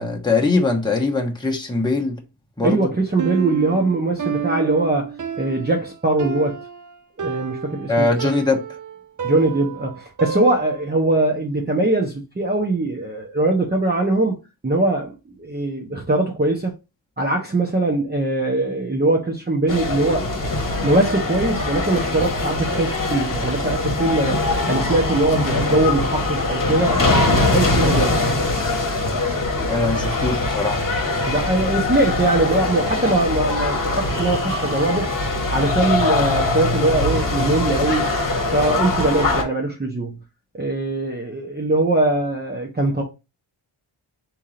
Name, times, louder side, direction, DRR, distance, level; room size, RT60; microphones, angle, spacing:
voice 1, 0.0-2.2 2.6-2.8 7.9-8.6 29.6-30.9, left 3 dB, 10° left, 1.2 m, -21 dB
voice 2, 2.6-6.6 7.2-8.1 9.2-14.4 14.6-15.1 15.4-16.7 17.2-20.3 20.8-24.4 24.7-28.2 31.3-35.1 35.5-38.1 38.5-40.2 40.5-43.0, right 2 dB, 20° right, 1.0 m, -21 dB
Piano, 3.2-11.0, right 7 dB, 40° right, 0.6 m, -30 dB
sound 1, 19.7-39.4, left 2 dB, 40° left, 1.4 m, -22 dB
3.6 x 3.0 x 4.8 m
cardioid pair, 60°, 50 cm